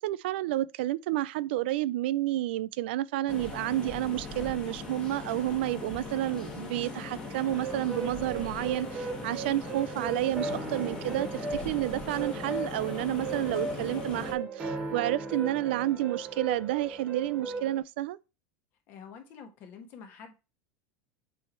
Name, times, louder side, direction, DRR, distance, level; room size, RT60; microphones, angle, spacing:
voice 1, 0.0-18.2, right 15 dB, 70° right, 0.4 m, -30 dB
sound 1, 3.3-14.3, left 3 dB, 10° left, 1.3 m, -40 dB
sound 2, 7.5-17.8, right 4 dB, 15° right, 1.3 m, -37 dB
voice 2, 18.9-20.3, left 6 dB, 35° left, 1.3 m, -47 dB
7.6 x 3.4 x 4.3 m
supercardioid pair, 175°, 6 cm